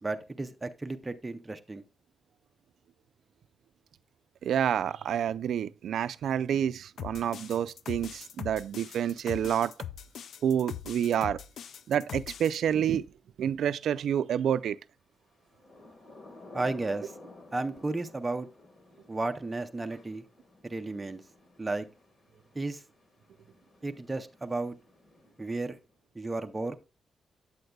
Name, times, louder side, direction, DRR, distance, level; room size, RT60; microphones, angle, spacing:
voice 1, 0.0-1.8 16.5-17.1 17.5-18.5 19.1-20.2 20.6-21.2 21.6-21.9 22.6-22.8 23.8-24.8 25.4-25.8 26.2-26.8, right 2 dB, 15° right, 0.5 m, -33 dB
voice 2, 4.4-9.7 10.4-11.4 11.9-13.1 13.4-14.8, right 9 dB, 80° right, 0.3 m, -28 dB
sound 1, 7.0-12.6, left 9 dB, 70° left, 0.3 m, -41 dB
Thunder / Rain, 15.4-25.9, left 2 dB, 40° left, 1.4 m, -54 dB
8.6 x 7.8 x 2.2 m
wide cardioid pair, 170°, 0 cm